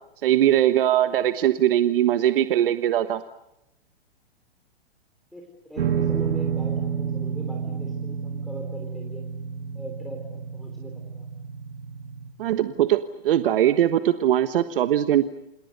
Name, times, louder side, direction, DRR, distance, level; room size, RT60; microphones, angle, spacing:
voice 1, 0.2-3.2 12.4-15.2, right 11 dB, 60° right, 11 dB, 1.3 m, -21 dB
voice 2, 5.3-9.2 9.7-10.2 10.5-11.3, equal, ahead, -2 dB, 3.6 m, -41 dB
sound 1, 5.8-12.3, right 7 dB, 80° right, 3.3 m, -30 dB
29.0 x 27.5 x 6.7 m, 0.83 s
hypercardioid pair, 150°, 31 cm